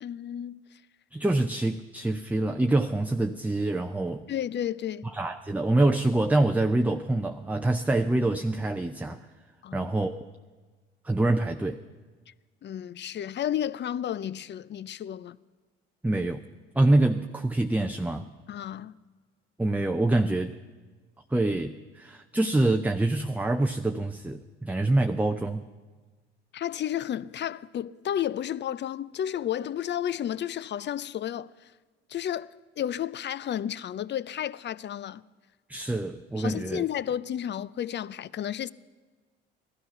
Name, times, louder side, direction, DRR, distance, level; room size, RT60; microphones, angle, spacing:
voice 1, 0.0-0.6 4.3-5.1 9.6-9.9 12.6-15.4 18.5-19.0 26.5-31.7 32.1-32.5 32.8-35.2 36.4-38.7, left 10 dB, 40° left, 0.5 m, -32 dB
voice 2, 1.1-4.3 5.0-9.3 9.7-10.1 11.0-11.8 16.0-16.4 16.7-18.3 19.6-20.6 21.3-25.6 35.7-36.8, right 2 dB, 5° right, 0.6 m, -25 dB
17.5 x 12.5 x 5.9 m
hypercardioid pair, 55°, 29 cm